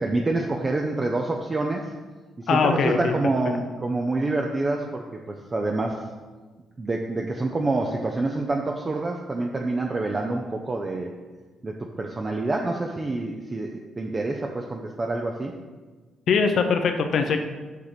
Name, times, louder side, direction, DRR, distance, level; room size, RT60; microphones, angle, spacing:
voice 1, 0.0-1.9 2.4-6.0 6.8-11.1 11.6-15.6, right 2 dB, 30° right, 1 dB, 0.7 m, -27 dB
voice 2, 2.5-3.1 16.3-17.4, left 5 dB, 65° left, 6 dB, 0.8 m, -21 dB
6.7 x 5.8 x 5.0 m, 1.3 s
cardioid pair, 90°, 0 cm